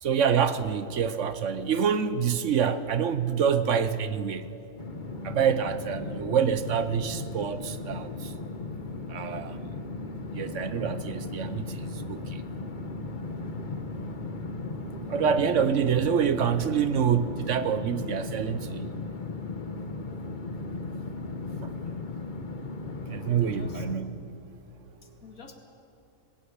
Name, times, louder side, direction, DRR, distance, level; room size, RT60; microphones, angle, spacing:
voice 1, 0.0-4.5 5.2-8.3 9.1-9.9 10.3-12.4 15.1-18.9 21.6-21.7 23.1-24.2, right 7 dB, 65° right, 12 dB, 1.2 m, -27 dB
sound 1, 4.8-24.0, left 3 dB, 40° left, 1.2 m, -36 dB
voice 2, 13.4-13.9 23.4-23.8 25.2-25.5, left 4 dB, 85° left, 5 dB, 2.5 m, -50 dB
19.5 x 18.0 x 8.6 m, 2.8 s
omnidirectional pair, 1.4 m